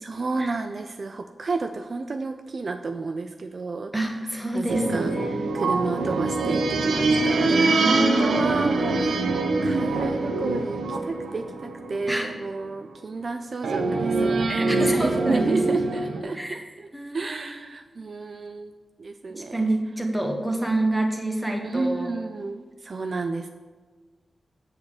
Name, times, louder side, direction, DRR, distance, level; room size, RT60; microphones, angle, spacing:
voice 1, 0.0-3.9 4.5-5.2 5.5-9.3 9.6-16.9 17.1-18.7 19.0-19.6 21.6-23.5, right 3 dB, 55° right, 8 dB, 0.4 m, -31 dB
voice 2, 3.9-5.5 7.6-8.3 12.1-12.3 14.5-15.8 16.3-16.6 16.9-17.5 19.3-22.1, right 1 dB, 10° right, 2 dB, 1.3 m, -27 dB
sound 1, 4.7-12.6 13.6-16.2, right 3 dB, 85° right, 0.8 m, -24 dB
7.7 x 7.2 x 4.9 m, 1.5 s
wide cardioid pair, 85°, 0 cm